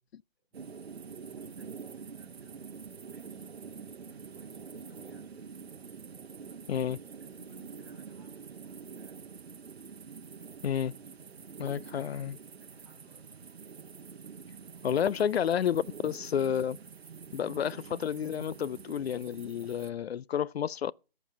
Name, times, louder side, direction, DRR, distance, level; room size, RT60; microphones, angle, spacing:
sound 1, 0.5-19.9, right 6 dB, 85° right, 0.9 m, -46 dB
voice 1, 1.2-5.6 6.4-6.8 7.2-9.2 12.6-13.5 14.7-15.0, left 1 dB, ahead, 2.8 m, -61 dB
voice 2, 6.7-7.0 10.6-10.9 11.6-12.4 14.8-16.8 17.3-20.9, left 9 dB, 80° left, 0.5 m, -30 dB
14.5 x 5.3 x 6.4 m
hypercardioid pair, 165°, 31 cm